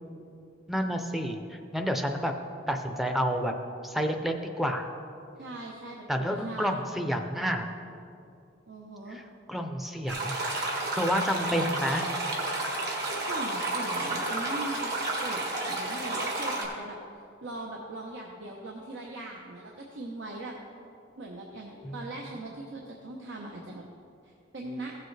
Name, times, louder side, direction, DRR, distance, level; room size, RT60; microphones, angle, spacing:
voice 1, 0.7-2.3 2.7-3.5 3.8-4.9 6.1-7.7 9.1-9.2 9.5-10.3 10.9-12.0 21.8-22.2, equal, ahead, 3 dB, 0.6 m, -29 dB
voice 2, 5.4-6.8 8.7-9.2 12.8-14.9 15.2-17.0 17.4-20.5 21.2-23.8 24.2-25.0, right 2 dB, 75° right, 0 dB, 0.9 m, -40 dB
sound 1, 10.1-16.6, right 2 dB, 60° right, 1.7 m, -31 dB
16.0 x 6.8 x 3.3 m, 2.5 s
head